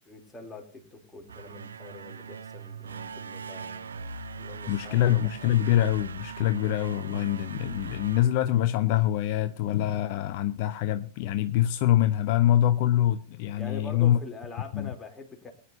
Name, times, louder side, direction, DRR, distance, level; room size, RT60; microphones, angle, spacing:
voice 1, 0.1-5.1 5.4-5.5 13.5-15.5, left 3 dB, 10° left, 3.0 m, -44 dB
sound 1, 1.2-9.1, right 5 dB, 70° right, 0.7 m, -41 dB
voice 2, 4.7-14.2 14.7-14.9, left 12 dB, 50° left, 0.6 m, -25 dB
21.0 x 10.0 x 2.7 m
figure-of-eight pair, 90°, 0 cm